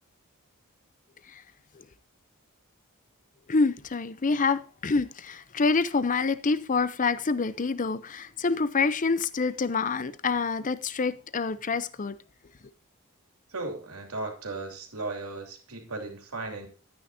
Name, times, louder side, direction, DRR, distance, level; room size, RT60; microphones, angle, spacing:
voice 1, 3.5-12.2, left 4 dB, 40° left, 0.6 m, -27 dB
voice 2, 13.5-16.7, right 3 dB, 90° right, 2.9 m, -36 dB
12.5 x 9.4 x 2.8 m
head